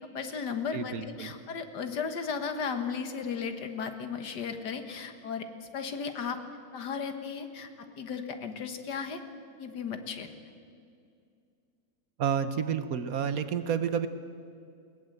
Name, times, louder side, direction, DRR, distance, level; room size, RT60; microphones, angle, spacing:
voice 1, 0.0-6.4 6.7-9.2 9.6-10.3, left 6 dB, 65° left, 7 dB, 2.0 m, -35 dB
voice 2, 0.7-1.3 12.2-14.1, right 7 dB, 55° right, 11 dB, 1.3 m, -30 dB
21.0 x 19.0 x 7.9 m, 2.4 s
omnidirectional pair, 2.0 m